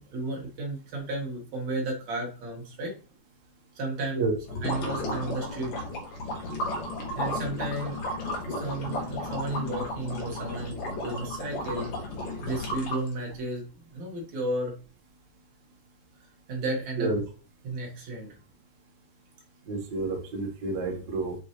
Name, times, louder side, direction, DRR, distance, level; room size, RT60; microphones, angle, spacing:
voice 1, 0.0-2.9 3.8-4.2 4.6-5.7 7.2-8.0 8.5-11.9 12.4-14.7 16.5-17.1 17.6-18.3, right 2 dB, 50° right, 0 dB, 2.7 m, -33 dB
sound 1, 4.4-13.4, left 1 dB, 60° left, 3.1 m, -33 dB
voice 2, 19.7-21.4, right 3 dB, 70° right, 1 dB, 1.0 m, -29 dB
8.4 x 5.2 x 3.2 m, 0.36 s
omnidirectional pair, 4.5 m